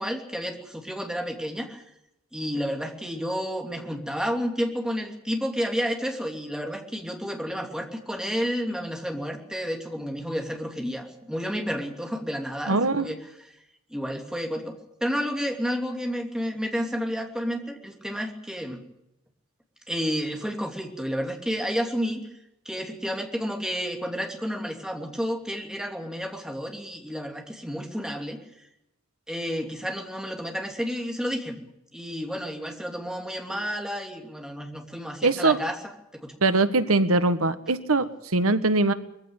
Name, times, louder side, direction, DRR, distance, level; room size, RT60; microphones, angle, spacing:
voice 1, 0.0-1.8 2.3-13.2 13.9-14.7 15.0-18.8 19.9-22.2 22.6-28.4 29.3-35.8 36.1-36.3, equal, 5° right, 3 dB, 2.8 m, -31 dB
voice 2, 12.7-13.1 35.2-35.6 36.4-38.9, right 3 dB, 85° right, 11 dB, 1.6 m, -22 dB
21.5 x 15.5 x 9.0 m, 0.85 s
head